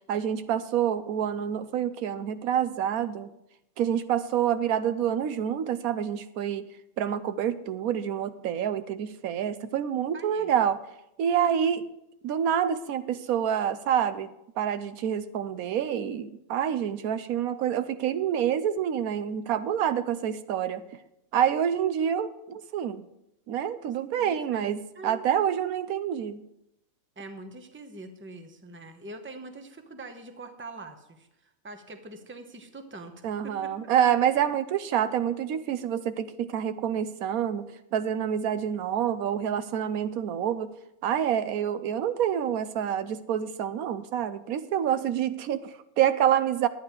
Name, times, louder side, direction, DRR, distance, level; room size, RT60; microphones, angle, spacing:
voice 1, 0.1-3.3 3.8-6.7 7.0-10.8 11.2-11.8 12.2-14.3 14.6-20.8 21.3-23.0 23.5-26.4 33.2-37.7 37.9-40.7 41.0-46.7, right 9 dB, 85° right, 13 dB, 1.1 m, -27 dB
voice 2, 10.1-10.5 24.2-25.2 27.2-33.1 33.4-33.7, right 2 dB, 10° right, 6 dB, 0.8 m, -43 dB
11.5 x 9.3 x 4.6 m, 0.83 s
omnidirectional pair, 1.5 m